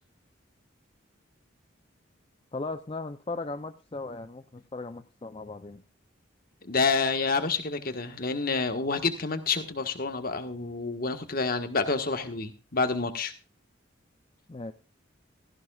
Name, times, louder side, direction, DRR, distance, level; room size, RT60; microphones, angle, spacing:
voice 1, 2.5-5.8 14.5-14.7, left 3 dB, 30° left, 8 dB, 0.5 m, -37 dB
voice 2, 6.6-13.3, left 4 dB, 45° left, 7 dB, 1.5 m, -28 dB
16.5 x 14.0 x 2.4 m, 0.33 s
head